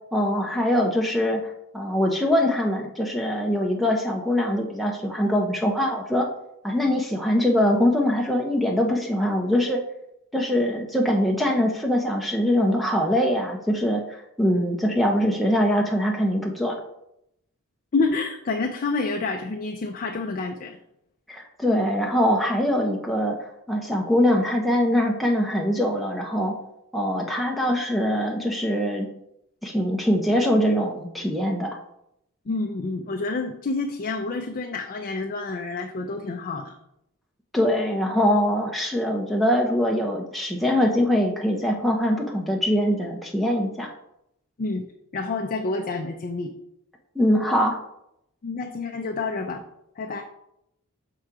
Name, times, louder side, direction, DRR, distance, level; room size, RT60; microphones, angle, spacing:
voice 1, 0.1-6.3 6.6-9.8 10.3-16.8 21.3-23.4 23.7-26.6 26.9-29.1 29.6-31.7 37.5-43.9 47.2-47.8, equal, ahead, -1 dB, 0.6 m, -23 dB
voice 2, 17.9-20.8 32.5-36.7 44.6-44.9 45.1-46.5 48.4-49.6 50.0-50.2, left 3 dB, 40° left, 3 dB, 0.5 m, -28 dB
6.0 x 3.8 x 4.6 m, 0.79 s
head